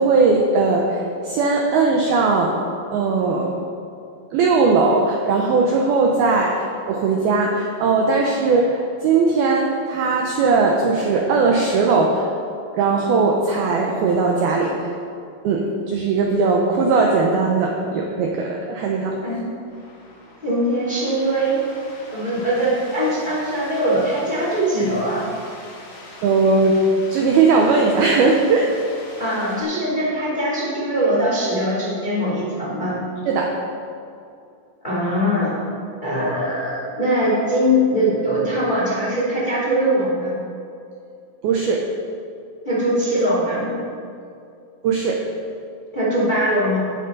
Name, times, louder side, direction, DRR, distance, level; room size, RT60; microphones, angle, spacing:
voice 1, 0.0-2.7 2.9-3.6 4.3-12.3 12.7-14.9 15.4-19.2 26.2-26.8 27.1-28.7 33.3-33.5 41.4-41.9 44.8-45.2, right 4 dB, 80° right, 0 dB, 2.2 m, -19 dB
voice 2, 19.2-19.6 20.4-21.6 22.1-25.3 29.2-33.0 34.8-35.5 36.0-40.4 42.6-43.7 45.9-46.8, equal, 15° left, -6 dB, 2.0 m, -21 dB
sound 1, 19.6-29.6, left 1 dB, 65° left, 5.0 m, -42 dB
16.0 x 9.4 x 3.9 m, 2.5 s
omnidirectional pair, 5.4 m